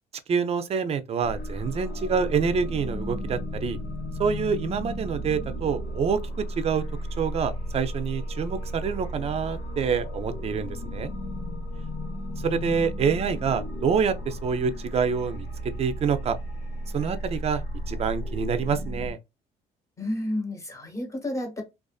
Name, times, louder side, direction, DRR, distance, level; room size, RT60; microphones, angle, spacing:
voice 1, 0.3-3.8 4.2-6.8 7.2-11.1 12.4-16.4 16.9-17.6 17.9-19.2, right 6 dB, 40° right, 0.4 m, -27 dB
sound 1, 1.2-19.1, equal, 85° left, 1.1 m, -34 dB
voice 2, 20.0-21.6, left 1 dB, 20° left, 1.0 m, -31 dB
2.5 x 2.4 x 2.3 m
cardioid pair, 110°, 17 cm